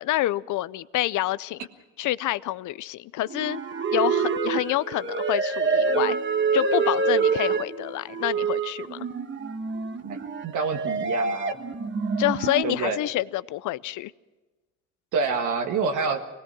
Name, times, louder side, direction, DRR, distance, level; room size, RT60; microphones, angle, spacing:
voice 1, 0.0-1.7 2.0-3.6 3.9-6.2 6.5-9.1 12.2-14.1, left 16 dB, 80° left, 18 dB, 0.6 m, -27 dB
sound 1, 3.3-12.6, right 5 dB, 40° right, 1.4 m, -26 dB
voice 2, 10.4-11.6 12.6-13.0 15.1-16.2, right 4 dB, 80° right, 4 dB, 1.8 m, -27 dB
23.0 x 19.0 x 6.1 m, 1.2 s
cardioid pair, 90°, 30 cm